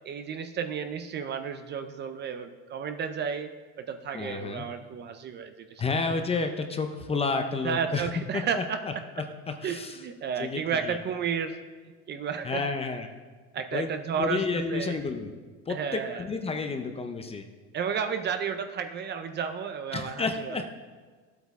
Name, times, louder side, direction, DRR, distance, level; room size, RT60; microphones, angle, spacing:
voice 1, 0.0-3.5 3.8-5.8 7.6-8.8 9.6-11.6 12.1-12.6 13.5-14.4 14.7-15.0 15.7-16.2 17.7-20.7, right 7 dB, 30° right, 8 dB, 0.5 m, -32 dB
voice 2, 4.1-4.7 5.8-8.1 8.3-10.0 10.4-11.0 12.4-13.1 13.7-13.9 14.2-15.3 15.7-17.4 19.9-20.7, left 4 dB, 20° left, 6 dB, 0.5 m, -31 dB
12.5 x 8.2 x 3.5 m, 1.5 s
cardioid pair, 150°, 34 cm